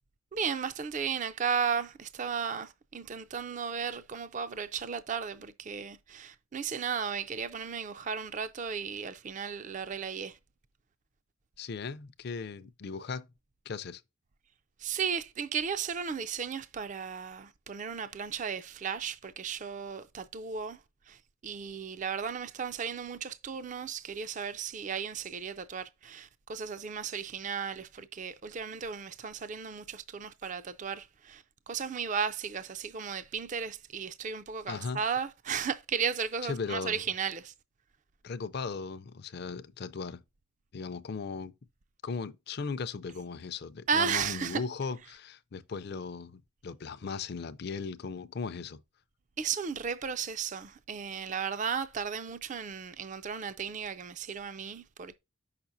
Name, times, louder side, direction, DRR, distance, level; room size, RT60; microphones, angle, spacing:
voice 1, 0.3-10.4 14.8-20.8 21.1-21.2 21.4-37.5 43.9-44.6 49.4-55.2, right 6 dB, 35° right, 0.4 m, -35 dB
voice 2, 11.6-13.3 13.7-14.0 34.7-35.0 36.4-37.0 38.2-40.2 40.7-41.5 42.0-48.8, left 4 dB, 50° left, 0.4 m, -37 dB
6.8 x 5.8 x 2.6 m
head